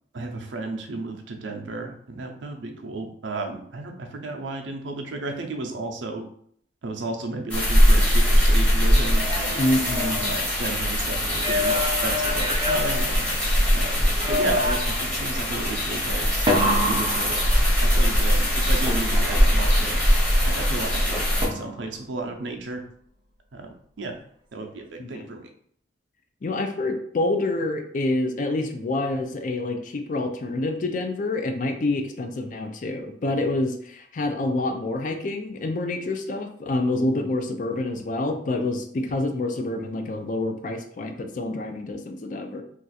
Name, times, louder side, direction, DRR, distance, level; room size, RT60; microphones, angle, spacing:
voice 1, 0.1-6.3 6.8-9.7 10.2-13.3 13.7-17.5 17.8-20.0 20.4-22.8 23.5-24.2 24.5-25.5, right 3 dB, 85° right, 3 dB, 0.5 m, -33 dB
sound 1, 7.5-21.5, equal, 5° left, 0.8 m, -21 dB
sound 2, 9.0-10.9 11.3-13.7 14.2-15.1 16.5-18.1 21.4-22.1, left 1 dB, 25° right, 0.4 m, -27 dB
voice 2, 9.6-10.3 13.9-14.3 25.0-25.3 26.4-42.6, left 2 dB, 45° left, 5 dB, 0.4 m, -27 dB
2.5 x 2.4 x 4.0 m, 0.64 s
head